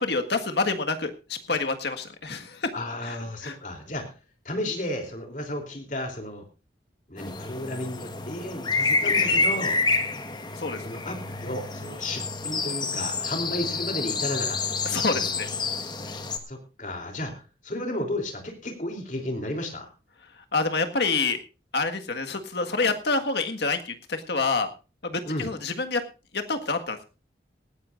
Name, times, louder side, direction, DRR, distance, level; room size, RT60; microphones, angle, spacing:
voice 1, 0.0-2.7 3.0-3.1 3.4-3.5 10.6-10.8 14.8-15.5 20.5-21.4 21.7-24.7 25.0-26.0 26.3-27.0, left 3 dB, 75° left, 6 dB, 1.7 m, -27 dB
voice 2, 2.7-4.1 4.4-6.4 7.1-9.8 10.8-15.3 16.5-19.9 25.2-25.5, left 1 dB, 45° left, 4 dB, 3.3 m, -33 dB
sound 1, 7.2-16.4, left 4 dB, 25° left, 1.4 m, -28 dB
18.5 x 14.5 x 2.6 m, 0.32 s
head